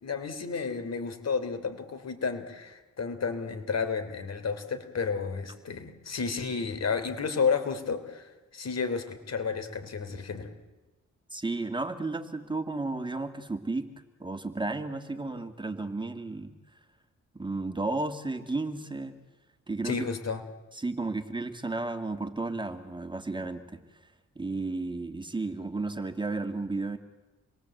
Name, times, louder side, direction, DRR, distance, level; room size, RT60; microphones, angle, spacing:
voice 1, 0.0-10.5 19.8-20.4, left 5 dB, 60° left, 9 dB, 3.4 m, -31 dB
voice 2, 11.3-13.9 14.2-16.5 17.3-19.1 19.7-20.1 20.7-23.8 24.4-27.0, right 3 dB, 15° right, 7 dB, 2.1 m, -33 dB
28.0 x 22.0 x 8.0 m, 1.1 s
cardioid pair, 80°, 30 cm